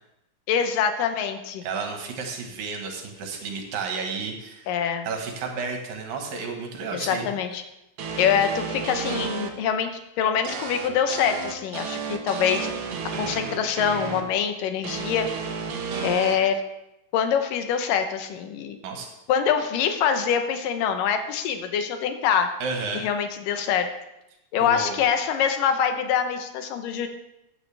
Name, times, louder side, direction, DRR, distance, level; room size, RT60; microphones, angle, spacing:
voice 1, 0.5-1.6 4.7-5.1 6.9-7.6 8.2-9.9 10.2-12.7 13.2-15.3 16.0-16.6 17.1-18.8 19.3-22.5 22.9-23.9 24.5-27.1, left 8 dB, 70° left, 7 dB, 2.5 m, -24 dB
voice 2, 1.6-4.7 5.0-7.3 18.8-19.1 22.6-23.1 24.6-25.0, right 4 dB, 75° right, 2 dB, 3.1 m, -32 dB
sound 1, 8.0-9.5 10.4-14.2 14.8-16.3, right 5 dB, 90° right, 1.2 m, -32 dB
15.5 x 9.5 x 3.4 m, 0.89 s
omnidirectional pair, 4.2 m